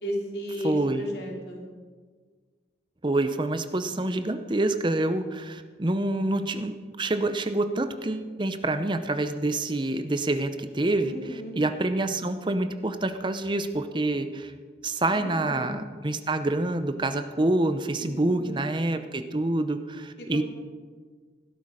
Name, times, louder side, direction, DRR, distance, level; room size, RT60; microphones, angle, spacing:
voice 1, 0.0-1.6 11.0-11.6 14.9-15.8 18.0-18.7 20.2-20.4, equal, 65° left, -1 dB, 3.3 m, -35 dB
voice 2, 0.6-1.1 3.0-11.1 11.5-14.5 14.8-20.4, right 2 dB, 25° right, 9 dB, 0.7 m, -27 dB
16.0 x 12.5 x 5.0 m, 1.5 s
head